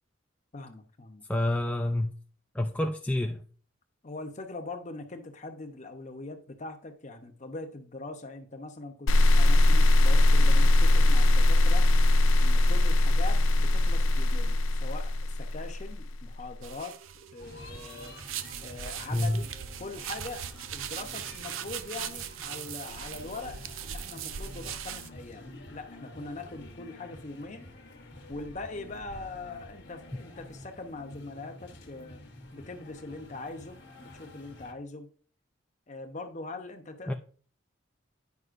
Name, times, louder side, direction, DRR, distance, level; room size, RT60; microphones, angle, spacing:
voice 1, 0.5-1.2 4.0-11.9 12.4-18.2 18.6-19.5 19.8-20.5 20.7-27.7 28.3-32.2 32.5-35.1 35.9-37.1, left 3 dB, 40° left, 0.8 m, -42 dB
voice 2, 1.3-2.1 2.5-3.4 19.1-19.4 37.1-37.2, left 1 dB, 5° left, 0.3 m, -28 dB
sound 1, 9.1-16.2, left 1 dB, 80° left, 0.5 m, -21 dB
sound 2, 16.6-25.1, right 9 dB, 85° right, 0.5 m, -40 dB
sound 3, 17.4-34.7, left 1 dB, 60° left, 1.2 m, -48 dB
9.5 x 5.4 x 2.5 m
head